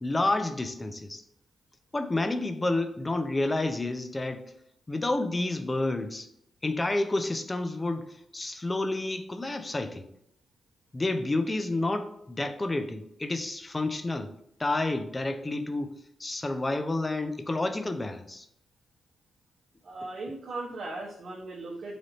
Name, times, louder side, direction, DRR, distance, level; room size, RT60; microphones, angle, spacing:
voice 1, 0.0-1.2 1.9-4.5 4.9-6.3 6.6-8.1 8.3-10.1 10.9-14.3 14.6-15.9 16.2-18.5, left 2 dB, 25° left, 8 dB, 0.5 m, -29 dB
voice 2, 19.8-22.0, right 2 dB, 55° right, -4 dB, 0.8 m, -38 dB
3.3 x 2.6 x 3.9 m, 0.72 s
cardioid pair, 60°, 0 cm